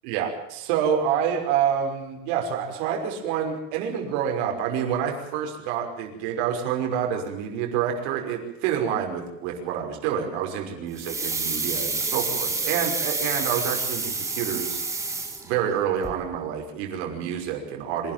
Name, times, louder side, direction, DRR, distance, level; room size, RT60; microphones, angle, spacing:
voice 1, 0.0-14.8 15.4-18.1, right 8 dB, 75° right, 1 dB, 5.7 m, -27 dB
sound 1, 11.0-15.8 16.0-16.1, right 3 dB, 10° right, 3.3 m, -28 dB
26.0 x 12.0 x 9.0 m, 0.87 s
cardioid pair, 170°, 33 cm